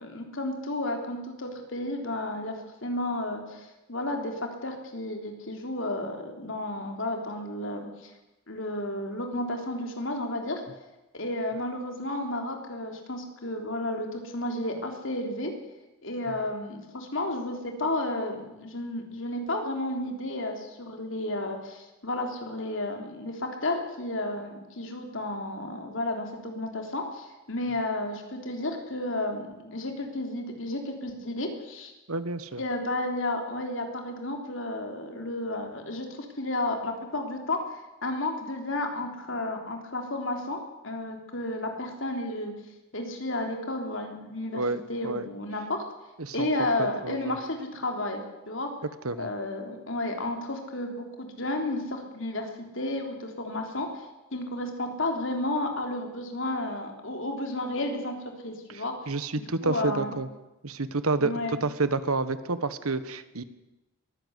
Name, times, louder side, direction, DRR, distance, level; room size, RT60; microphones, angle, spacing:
voice 1, 0.0-2.6 2.8-8.1 8.5-10.6 11.1-15.5 16.0-31.9 32.6-42.5 42.9-44.6 44.9-45.8 46.3-48.7 49.2-52.5 52.7-54.1 54.3-58.1 58.4-58.9 59.6-60.1 61.2-61.6, left 1 dB, 60° left, 3 dB, 3.5 m, -32 dB
voice 2, 32.1-32.6 44.5-45.3 46.2-46.5 46.8-47.4 49.0-49.3 58.7-60.3 60.6-63.4, right 3 dB, 80° right, 13 dB, 1.3 m, -29 dB
22.0 x 16.0 x 8.2 m, 1.0 s
head